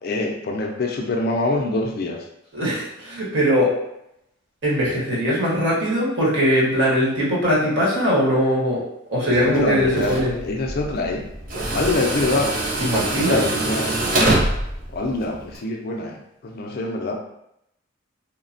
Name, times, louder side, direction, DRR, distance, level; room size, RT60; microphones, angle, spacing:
voice 1, 0.0-2.2 9.4-10.2 10.4-11.2 11.7-12.5 13.3-13.9 14.9-16.2 16.4-17.1, left 2 dB, 50° left, 1 dB, 0.4 m, -24 dB
voice 2, 2.5-3.7 4.6-8.8 9.1-10.3 12.8-13.5, equal, 65° right, -7 dB, 1.1 m, -20 dB
Tools, 9.3-15.6, right 1 dB, 45° right, 0.5 m, -25 dB
3.1 x 2.0 x 2.6 m, 0.81 s
head